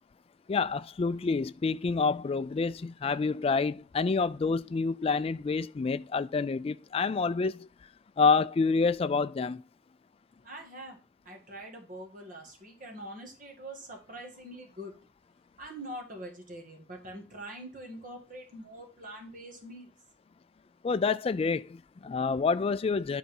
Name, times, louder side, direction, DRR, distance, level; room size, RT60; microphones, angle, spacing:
voice 1, 0.5-7.7 8.2-9.6 20.8-23.2, left 4 dB, 30° left, 0.3 m, -28 dB
voice 2, 10.4-11.0 11.3-14.9 15.6-19.9, right 1 dB, 45° right, 2.1 m, -44 dB
10.0 x 4.1 x 5.4 m
head